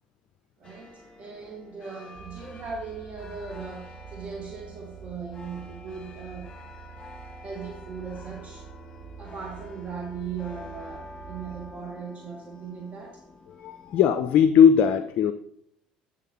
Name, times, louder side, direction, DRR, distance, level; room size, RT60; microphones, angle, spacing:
sound 1, 0.6-14.2, left 3 dB, 25° left, 1.5 m, -48 dB
voice 1, 0.6-6.6 7.4-8.7 9.2-13.2, right 5 dB, 35° right, 2 dB, 1.2 m, -38 dB
sound 2, 2.1-11.7, right 8 dB, 60° right, 1.1 m, -46 dB
voice 2, 13.5-15.3, left 8 dB, 50° left, 11 dB, 0.4 m, -19 dB
8.1 x 4.2 x 4.3 m, 0.67 s
hypercardioid pair, 65°, 4 cm